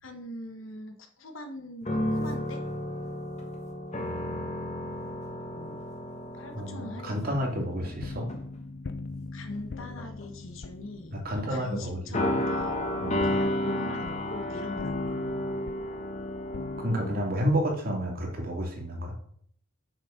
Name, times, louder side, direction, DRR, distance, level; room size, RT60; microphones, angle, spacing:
voice 1, 0.0-2.6 5.5-5.8 6.3-7.4 9.3-11.2 11.5-12.8 13.1-15.0, left 1 dB, 80° left, 6 dB, 1.4 m, -42 dB
sound 1, 1.8-7.9 8.3-8.6 9.5-10.3 12.1-17.3, left 1 dB, 35° left, 1.4 m, -32 dB
voice 2, 6.5-8.3 11.1-12.0 12.3-12.4 13.0-13.1 16.8-19.1, equal, 50° right, 1 dB, 2.4 m, -30 dB
sound 2, 7.2-16.8, left 3 dB, 55° left, 0.5 m, -41 dB
6.7 x 6.4 x 5.1 m, 0.62 s
head